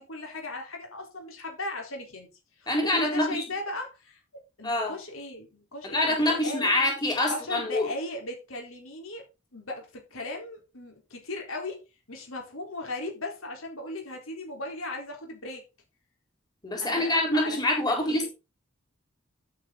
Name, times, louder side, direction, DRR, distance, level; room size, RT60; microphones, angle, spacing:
voice 1, 0.0-2.3 2.6-4.2 4.6-6.7 7.2-9.2 9.5-15.6 16.8-18.3, left 2 dB, 85° left, 4.1 m, -37 dB
voice 2, 2.7-3.4 4.6-4.9 5.9-7.9 16.6-18.3, left 1 dB, 20° left, 4.2 m, -25 dB
9.8 x 9.3 x 4.0 m
head